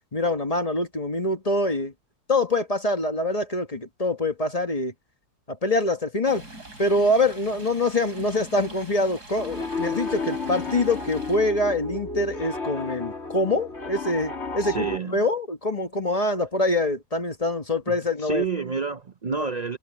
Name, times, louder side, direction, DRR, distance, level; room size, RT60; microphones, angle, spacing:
voice 1, 0.1-1.9 2.3-4.9 5.5-6.4 6.8-18.4, left 2 dB, 25° left, 1.2 m, -25 dB
Stream, 6.2-11.4, right 2 dB, 80° right, 8.5 m, -44 dB
Piano, 9.4-15.0, left 3 dB, 40° left, 3.2 m, -32 dB
voice 2, 14.6-15.2 17.9-19.8, right 5 dB, 55° right, 0.4 m, -29 dB
omnidirectional pair, 1.7 m